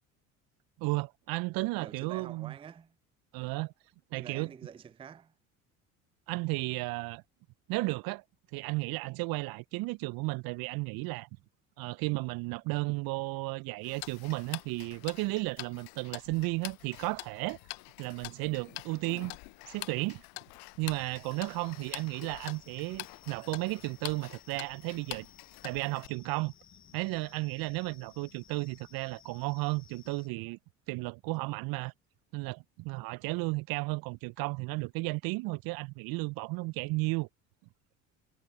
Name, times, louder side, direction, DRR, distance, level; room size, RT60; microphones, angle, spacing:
voice 1, 0.8-2.5 3.3-3.7 4.1-4.5 6.3-7.2 7.7-8.2 8.5-11.3 11.8-17.6 18.0-19.4 19.6-20.2 20.8-25.3 25.6-26.5 26.9-30.6 30.9-31.9 32.3-37.3, right 24 dB, 60° right, 0.6 m, -34 dB
voice 2, 1.8-3.0 4.1-5.4, right 7 dB, 15° right, 0.4 m, -48 dB
Tick-tock, 13.8-26.1, left 29 dB, 65° left, 0.6 m, -46 dB
sound 1, 20.9-30.3, left 9 dB, 30° left, 0.8 m, -59 dB
hypercardioid pair, 65°, 41 cm